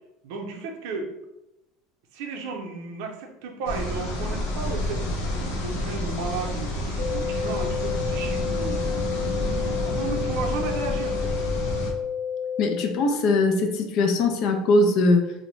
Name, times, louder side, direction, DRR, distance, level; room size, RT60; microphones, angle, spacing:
voice 1, 0.2-1.1 2.1-8.8 9.7-11.3, right 4 dB, 75° right, 1 dB, 0.6 m, -34 dB
sound 1, 3.7-11.9, left 1 dB, 85° left, 0.7 m, -29 dB
sound 2, 7.0-13.0, left 7 dB, 30° left, 0.9 m, -30 dB
voice 2, 12.6-15.3, left 2 dB, 50° left, 5 dB, 0.4 m, -21 dB
2.6 x 2.1 x 3.0 m, 0.93 s
cardioid pair, 145°, 0 cm